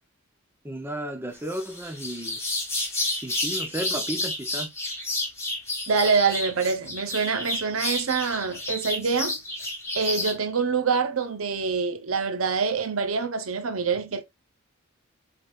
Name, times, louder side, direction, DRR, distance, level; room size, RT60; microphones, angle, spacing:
voice 1, 0.6-2.4 3.2-4.7, right 1 dB, 10° right, 0.9 m, -33 dB
sound 1, 1.4-10.4, left 1 dB, 15° left, 2.0 m, -31 dB
voice 2, 5.9-9.4 9.9-14.2, right 5 dB, 85° right, 0.8 m, -25 dB
4.9 x 3.8 x 2.5 m
head